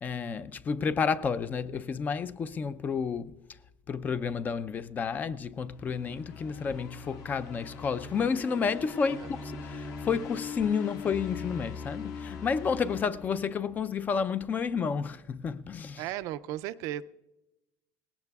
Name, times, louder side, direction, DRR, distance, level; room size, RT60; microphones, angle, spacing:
voice 1, 0.0-3.3 3.9-16.0, left 6 dB, 30° left, 0.4 m, -31 dB
sound 1, 5.6-13.9, left 5 dB, 60° left, 1.7 m, -41 dB
voice 2, 16.0-17.0, right 13 dB, 65° right, 0.4 m, -35 dB
19.0 x 17.5 x 2.3 m
supercardioid pair, 125°, 6 cm